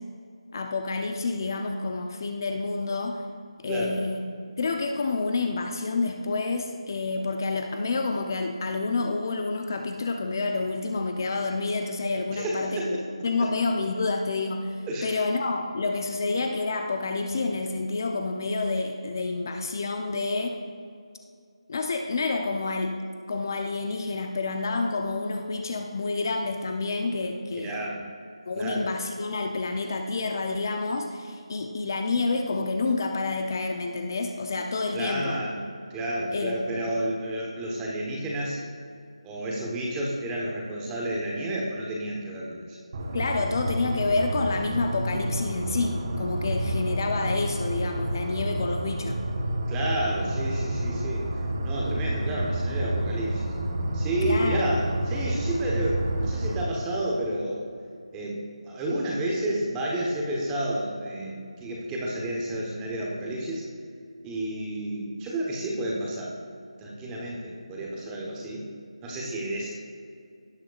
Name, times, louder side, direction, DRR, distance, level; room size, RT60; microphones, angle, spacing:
voice 1, 0.5-3.2 3.6-13.0 13.2-20.6 21.7-23.0 23.3-27.8 28.5-35.4 36.3-36.9 43.1-49.2 54.2-54.7, left 3 dB, 35° left, 4 dB, 0.6 m, -28 dB
voice 2, 3.7-4.0 12.3-13.0 13.4-13.5 14.9-15.2 27.5-28.0 28.6-28.9 34.9-35.6 35.9-38.6 39.2-42.8 49.7-53.4 53.9-57.7 58.1-63.7 64.2-66.4 66.8-68.7 69.0-69.8, right 1 dB, 10° right, -3 dB, 1.1 m, -31 dB
sound 1, 42.9-56.6, right 1 dB, 35° right, 1.1 m, -29 dB
17.5 x 7.7 x 2.4 m, 2.4 s
figure-of-eight pair, 170°, 3 cm